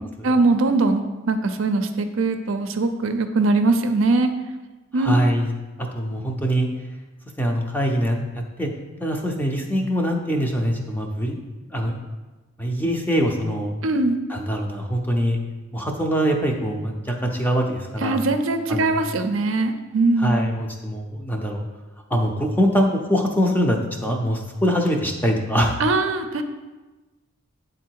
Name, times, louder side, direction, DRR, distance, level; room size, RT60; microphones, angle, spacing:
voice 1, 0.2-4.3 4.9-5.1 13.8-14.2 18.0-20.4 25.8-26.4, right 3 dB, 65° right, 6 dB, 0.5 m, -21 dB
voice 2, 5.0-5.5 5.8-6.7 7.4-8.7 9.0-11.4 11.7-12.0 12.6-13.7 14.3-15.4 15.7-18.2 18.7-19.0 20.2-21.6 22.1-25.8, equal, 10° left, 1 dB, 0.6 m, -23 dB
8.4 x 3.8 x 4.6 m, 1.2 s
head